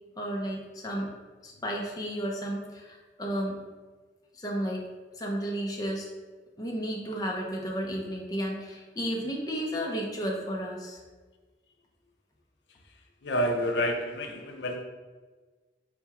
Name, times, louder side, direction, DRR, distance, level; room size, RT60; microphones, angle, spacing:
voice 1, 0.2-1.1 1.4-3.6 4.3-4.9 5.1-6.1 6.6-11.0, equal, 20° left, -2 dB, 0.6 m, -33 dB
voice 2, 13.2-14.8, equal, 70° left, 2 dB, 0.5 m, -29 dB
4.5 x 3.4 x 2.9 m, 1.3 s
head